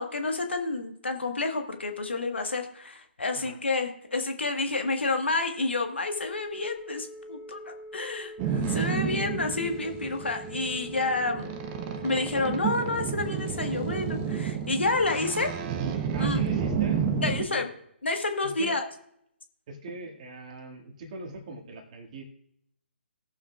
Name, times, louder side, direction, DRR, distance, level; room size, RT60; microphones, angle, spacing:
voice 1, 0.0-11.5 12.0-15.5 16.2-16.4 17.2-17.7 18.0-18.8, left 3 dB, 70° left, 5 dB, 1.3 m, -29 dB
Telephone, 6.1-14.4, equal, 20° left, 1.0 m, -44 dB
Boat Water vehicle, 8.4-17.4, right 7 dB, 20° right, 0.8 m, -31 dB
voice 2, 15.0-15.5 16.1-17.0 17.5-17.6 18.4-18.8 19.7-22.2, right 2 dB, 35° right, 2 dB, 1.9 m, -40 dB
18.0 x 7.0 x 2.3 m, 0.74 s
figure-of-eight pair, 135°, 6 cm